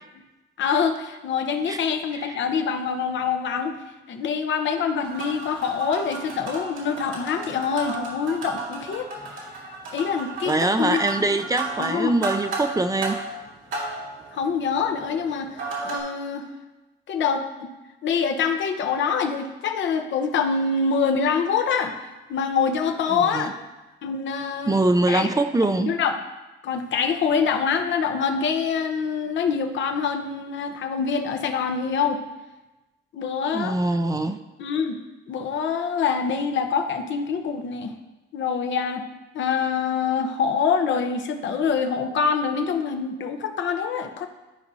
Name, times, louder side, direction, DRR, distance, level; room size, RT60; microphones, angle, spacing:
voice 1, 0.6-3.8 4.1-9.1 9.9-11.0 11.8-12.1 14.3-16.5 17.1-17.7 18.0-21.9 22.3-23.5 24.0-24.8 25.1-25.3 25.8-26.2 26.6-32.2 33.1-33.8 34.6-35.0 35.3-37.9 38.3-39.0 39.3-44.3, left 6 dB, 70° left, 5 dB, 0.8 m, -25 dB
sound 1, 5.0-16.0, right 3 dB, 80° right, 2.3 m, -34 dB
voice 2, 10.5-13.2 23.1-23.5 24.7-25.9 33.5-34.4, right 2 dB, 20° right, 8 dB, 0.5 m, -23 dB
12.5 x 5.0 x 2.7 m, 1.1 s
cardioid pair, 90°, 20 cm